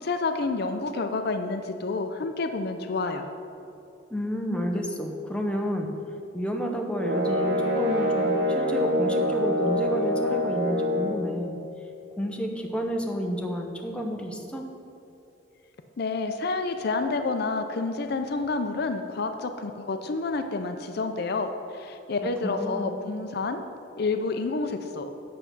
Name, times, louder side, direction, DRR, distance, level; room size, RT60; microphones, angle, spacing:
voice 1, 0.0-3.3 16.0-23.6 24.0-25.1, left 3 dB, 60° left, 7 dB, 0.5 m, -29 dB
voice 2, 4.1-5.9 6.3-11.6 12.2-14.7 22.4-23.0, equal, 5° left, 2 dB, 0.8 m, -30 dB
sound 1, 7.0-11.2, left 1 dB, 70° right, 0.9 m, -25 dB
8.5 x 6.8 x 6.0 m, 2.9 s
head